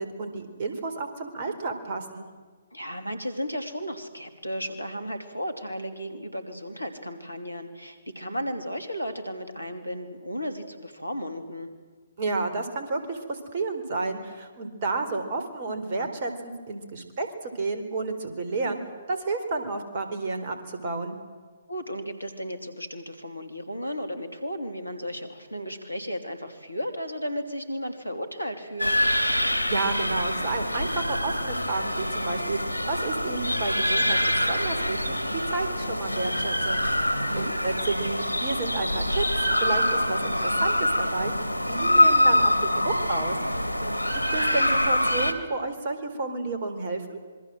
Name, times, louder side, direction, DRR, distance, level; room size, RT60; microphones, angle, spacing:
voice 1, 0.0-2.3 12.2-18.8 19.1-21.2 29.5-36.8 37.4-39.2 39.6-41.3 41.7-43.4 44.3-47.2, right 3 dB, 40° right, 6 dB, 4.0 m, -31 dB
voice 2, 2.7-11.7 21.7-29.0 37.2-37.5 43.5-44.0, equal, 85° left, 9 dB, 3.1 m, -34 dB
sound 1, 28.8-45.3, left 1 dB, 90° right, 2.6 m, -25 dB
26.5 x 22.5 x 7.8 m, 1.5 s
figure-of-eight pair, 130°, 0 cm